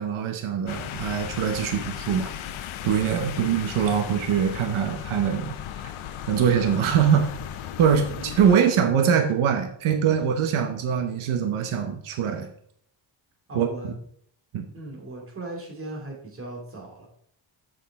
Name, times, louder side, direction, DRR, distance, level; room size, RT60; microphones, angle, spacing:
voice 1, 0.0-2.3 2.8-5.6 6.3-7.3 7.8-8.0 8.4-12.5 13.5-13.7 14.5-14.7, right 8 dB, 90° right, 5 dB, 1.1 m, -23 dB
sound 1, 0.7-8.6, left 10 dB, 85° left, 0.8 m, -36 dB
voice 2, 7.9-8.6 10.2-10.3 13.5-13.9 14.7-17.1, right 2 dB, 25° right, -1 dB, 2.5 m, -38 dB
7.6 x 6.6 x 3.7 m, 0.65 s
wide cardioid pair, 165°, 48 cm